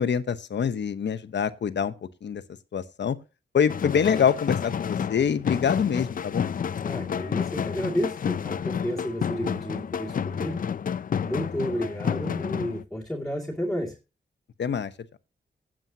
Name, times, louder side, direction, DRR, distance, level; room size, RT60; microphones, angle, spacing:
voice 1, 0.0-1.9 2.2-2.4 2.7-3.2 3.5-6.5 14.6-14.9, left 7 dB, 75° left, 1.0 m, -25 dB
sound 1, 3.7-12.8, left 7 dB, 50° left, 0.4 m, -30 dB
voice 2, 6.8-10.6 11.2-13.9, equal, ahead, 2.3 m, -31 dB
16.5 x 7.6 x 2.8 m
wide cardioid pair, 105°, 19 cm